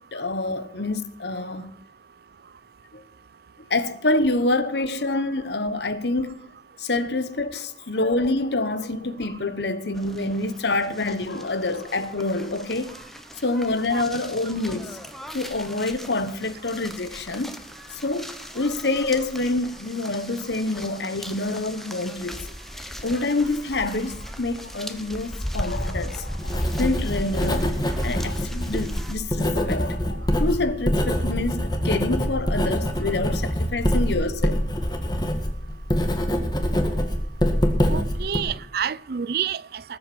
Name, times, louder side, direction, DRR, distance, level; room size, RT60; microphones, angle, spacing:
voice 1, 0.0-1.7 2.9-3.0 3.7-6.4 6.8-13.0 13.4-15.0 15.3-17.6 17.9-18.3 18.5-22.5 23.0-27.7 28.0-34.6, left 2 dB, 70° left, 1.2 m, -27 dB
sound 1, 9.9-29.2, equal, ahead, 1.1 m, -39 dB
Writing, 25.6-38.4, equal, 25° left, 1.9 m, -25 dB
voice 2, 37.9-39.8, right 8 dB, 60° right, 0.5 m, -28 dB
20.0 x 7.9 x 6.1 m
head